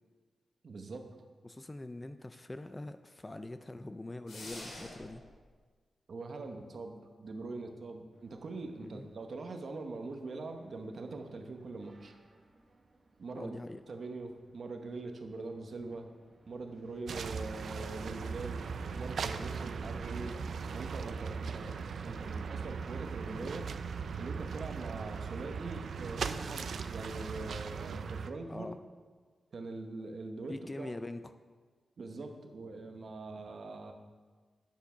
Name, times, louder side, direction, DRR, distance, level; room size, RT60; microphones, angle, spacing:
voice 1, 0.6-1.1 6.1-12.1 13.2-13.6 13.9-16.1 16.5-18.7 19.0-20.4 20.7-23.6 24.2-28.7 29.5-30.9 32.0-33.9, right 3 dB, 50° right, 5 dB, 0.9 m, -43 dB
voice 2, 1.4-5.2 8.9-9.1 13.3-13.8 23.4-23.5 28.5-28.8 30.5-31.3, left 2 dB, 15° left, 10 dB, 0.3 m, -43 dB
sound 1, 4.3-5.3, left 1 dB, 85° left, 2.8 m, -46 dB
sound 2, 8.1-27.8, right 2 dB, 35° right, 1.2 m, -58 dB
sound 3, 17.1-28.3, right 5 dB, 70° right, 0.4 m, -39 dB
9.3 x 7.1 x 5.6 m, 1.5 s
wide cardioid pair, 170°, 0 cm